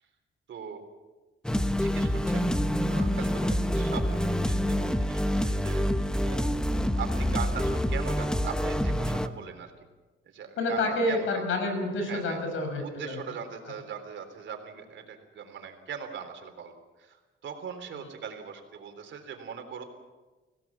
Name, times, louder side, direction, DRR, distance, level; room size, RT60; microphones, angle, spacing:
voice 1, 0.5-0.8 1.8-2.4 2.9-6.5 7.0-9.7 10.3-11.4 12.1-12.4 12.8-16.7 17.0-17.2 17.4-19.8, right 7 dB, 70° right, 6 dB, 3.6 m, -40 dB
sound 1, 1.4-9.3, equal, 5° left, 1.0 m, -27 dB
voice 2, 10.6-13.1, left 2 dB, 80° left, 5 dB, 6.1 m, -28 dB
25.5 x 17.5 x 7.3 m, 1.2 s
cardioid pair, 125°, 20 cm